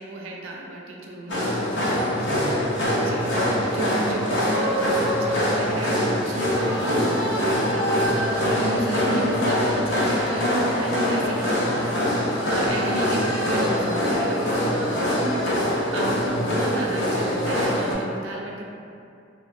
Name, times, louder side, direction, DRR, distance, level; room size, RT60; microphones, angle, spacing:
voice 1, 0.0-1.4 3.0-3.4 3.7-18.6, right 1 dB, 85° right, -1 dB, 0.4 m, -32 dB
sound 1, 1.3-17.9, equal, 70° left, 0.5 m, -23 dB
voice 2, 2.0-3.6 3.9-4.0 12.5-13.2 16.3-16.5, equal, 25° left, -11 dB, 0.8 m, -37 dB
Keyboard (musical), 2.1-10.4, equal, 30° right, 0.5 m, -38 dB
2.4 x 2.1 x 2.4 m, 2.5 s
head